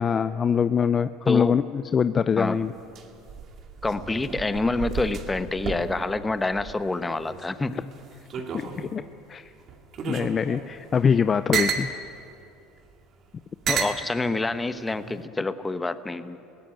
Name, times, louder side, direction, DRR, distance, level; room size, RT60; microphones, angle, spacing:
voice 1, 0.0-2.7 7.7-7.8 8.5-9.0 9.3-9.5 10.1-11.9, left 6 dB, 30° left, 13 dB, 0.5 m, -23 dB
sound 1, 2.4-7.5 7.8-9.0 9.7-11.9 12.8-12.9 13.6-14.0 14.9-15.3, right 6 dB, 45° right, 2.2 m, -32 dB
voice 2, 3.8-7.8 13.7-16.4, left 2 dB, 15° left, 11 dB, 1.1 m, -27 dB
20.0 x 16.5 x 9.2 m, 2.7 s
supercardioid pair, 95°, 0 cm